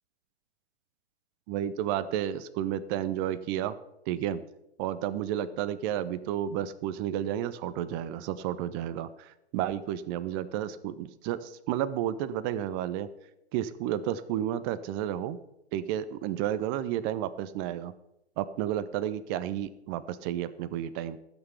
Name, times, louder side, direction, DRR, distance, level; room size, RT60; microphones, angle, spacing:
voice 1, 1.5-3.7 4.1-4.4 4.8-13.1 13.5-15.4 15.7-17.9 18.4-21.2, right 11 dB, 20° right, 14 dB, 0.4 m, -31 dB
14.0 x 6.1 x 6.7 m, 0.83 s
figure-of-eight pair, 115°, 33 cm